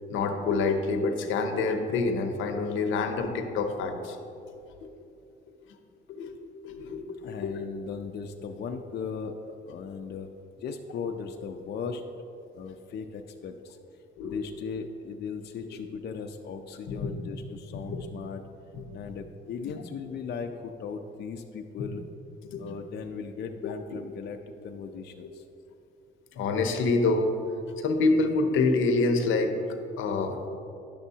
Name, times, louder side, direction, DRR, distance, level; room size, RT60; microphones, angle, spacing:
voice 1, 0.1-4.2 4.6-4.9 6.1-6.4 6.6-7.6 14.2-14.4 16.9-17.1 17.7-18.0 18.7-18.8 21.8-21.9 22.4-22.6 23.6-23.7 26.4-27.3 27.8-30.5, left 3 dB, 85° left, 6 dB, 0.7 m, -27 dB
voice 2, 7.2-10.3 10.6-12.0 12.5-13.8 14.2-18.4 18.9-22.0 22.6-24.4 24.6-25.4, left 5 dB, 55° left, 4 dB, 0.5 m, -37 dB
10.0 x 7.0 x 2.8 m, 2.7 s
cardioid pair, 90°, 20 cm